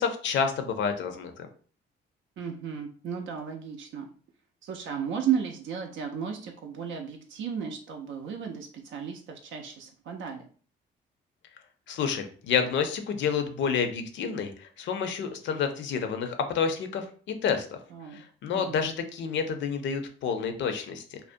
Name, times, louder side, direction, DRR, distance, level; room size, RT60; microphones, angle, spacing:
voice 1, 0.0-1.5 11.9-17.0 17.4-17.7 18.1-21.2, left 6 dB, 70° left, 7 dB, 0.5 m, -29 dB
voice 2, 2.4-4.1 4.6-10.5 17.9-18.2 18.5-18.8, right 8 dB, 70° right, 3 dB, 0.4 m, -34 dB
2.5 x 2.1 x 2.5 m, 0.42 s
cardioid pair, 90°, 20 cm